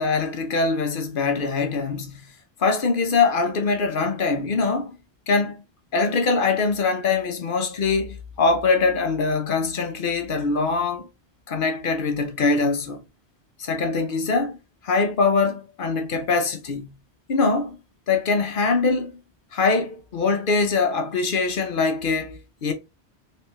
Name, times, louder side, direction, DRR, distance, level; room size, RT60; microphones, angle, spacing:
voice 1, 0.0-2.3 2.6-5.0 5.3-5.6 5.9-11.1 11.5-13.0 13.6-14.6 14.8-16.9 17.3-17.8 18.1-19.1 19.5-22.7, left 4 dB, 55° left, 0.8 m, -23 dB
3.4 x 3.2 x 2.8 m
omnidirectional pair, 1.1 m